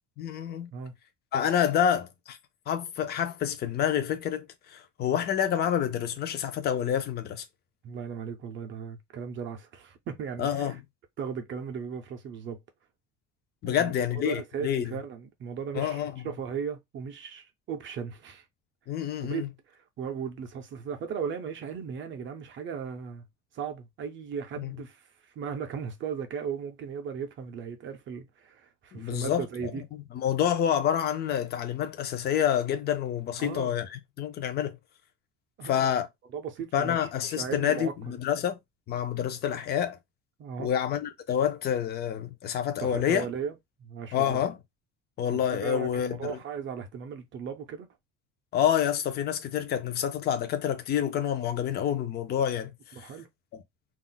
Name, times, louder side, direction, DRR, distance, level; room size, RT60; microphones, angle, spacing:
voice 1, 0.2-0.7 1.3-2.4 2.7-7.4 10.4-10.8 13.6-15.0 15.7-16.3 18.9-19.5 24.6-24.7 28.9-29.4 30.1-34.7 35.6-36.1 36.7-38.6 38.9-40.0 40.6-43.3 44.1-44.6 45.2-46.4 48.5-52.7 53.0-53.1, left 9 dB, 35° left, 0.4 m, -28 dB
voice 2, 7.8-10.8 11.2-12.6 13.6-18.4 19.2-23.2 23.5-29.8 33.4-33.8 35.6-35.9 36.3-37.9 40.4-40.7 42.8-44.4 45.3-47.9 52.9-53.3, right 7 dB, 40° right, 0.5 m, -37 dB
2.4 x 2.0 x 3.7 m
cardioid pair, 170°, 31 cm